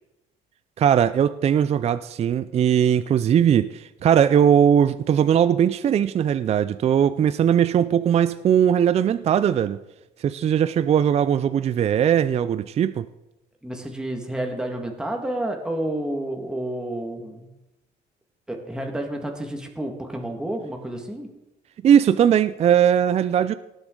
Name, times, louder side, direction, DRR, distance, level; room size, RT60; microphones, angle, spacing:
voice 1, 0.8-9.8 10.2-13.1 21.8-23.5, right 9 dB, 40° right, 0.4 m, -19 dB
voice 2, 13.6-17.5 18.5-21.3, right 1 dB, 5° right, 1.7 m, -30 dB
18.5 x 8.0 x 3.8 m
cardioid pair, 110°, 17 cm